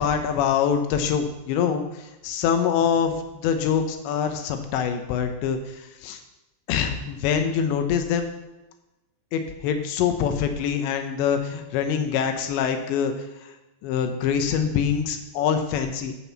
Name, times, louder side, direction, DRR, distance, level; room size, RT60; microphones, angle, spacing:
voice 1, 0.0-6.2 6.7-8.3 9.3-13.1 13.8-16.2, left 7 dB, 90° left, 6 dB, 3.2 m, -24 dB
9.0 x 6.2 x 7.2 m, 0.98 s
omnidirectional pair, 5.0 m